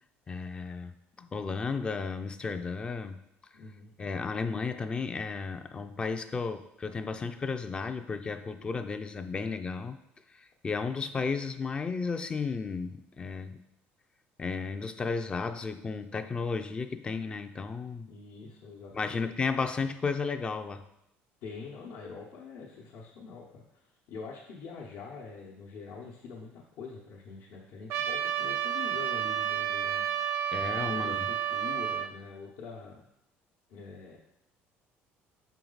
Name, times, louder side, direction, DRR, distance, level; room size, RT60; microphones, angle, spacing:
voice 1, 0.3-0.9 1.2-3.2 4.0-10.0 10.3-13.6 14.4-18.1 18.9-20.8 30.5-31.2, left 4 dB, 20° left, 9 dB, 0.3 m, -33 dB
voice 2, 3.5-3.9 18.1-19.3 21.4-33.1 33.7-34.2, left 5 dB, 75° left, -4 dB, 1.0 m, -45 dB
Trumpet, 27.9-32.1, right 9 dB, 60° right, 0.5 m, -31 dB
6.3 x 4.6 x 3.9 m, 0.82 s
cardioid pair, 140°, 5 cm